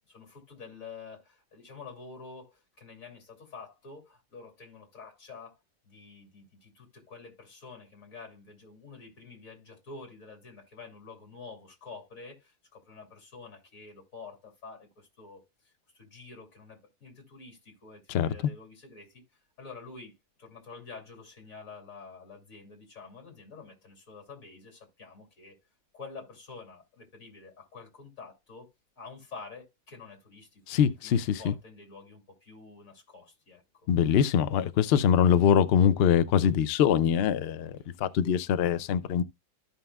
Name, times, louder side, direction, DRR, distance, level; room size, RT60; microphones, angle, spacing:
voice 1, 0.1-5.6 5.8-25.6 25.9-28.7 29.0-30.6 31.0-33.9 37.8-37.9, left 4 dB, 55° left, 3.0 m, -48 dB
voice 2, 30.7-31.5 33.9-39.2, left 8 dB, 90° left, 0.5 m, -23 dB
13.5 x 5.6 x 2.3 m
omnidirectional pair, 1.7 m